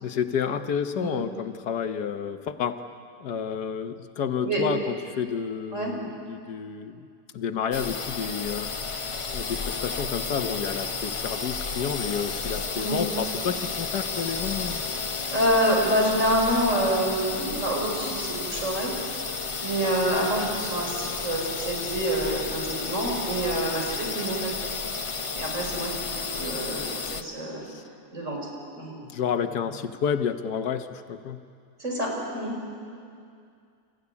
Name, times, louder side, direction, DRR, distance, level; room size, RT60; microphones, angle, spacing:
voice 1, 0.0-2.8 3.2-7.0 7.3-8.7 9.3-14.8 27.6-27.8 29.0-31.4, left 7 dB, 75° left, 9 dB, 1.5 m, -30 dB
sound 1, 7.7-27.2, left 4 dB, 40° left, 0.4 m, -32 dB
voice 2, 15.3-18.9 19.6-24.7 25.3-25.9 26.3-26.9 27.1-27.6 28.1-28.4 28.8-28.9 31.8-32.5, right 1 dB, 45° right, -1 dB, 5.6 m, -27 dB
29.5 x 15.0 x 9.7 m, 2.3 s
omnidirectional pair, 1.8 m